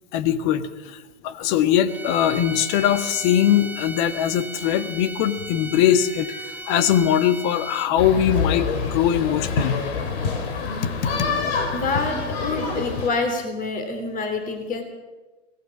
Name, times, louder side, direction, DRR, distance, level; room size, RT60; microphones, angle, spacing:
voice 1, 0.1-9.8 10.8-11.3, left 10 dB, 40° left, 12 dB, 1.6 m, -21 dB
sound 1, 1.9-8.1, right 1 dB, 5° right, 1.1 m, -36 dB
sound 2, 8.0-13.1, left 5 dB, 55° left, 3.6 m, -26 dB
voice 2, 11.7-14.8, left 3 dB, 20° left, 6 dB, 3.4 m, -26 dB
24.5 x 18.5 x 6.2 m, 1.2 s
figure-of-eight pair, 105°, 36 cm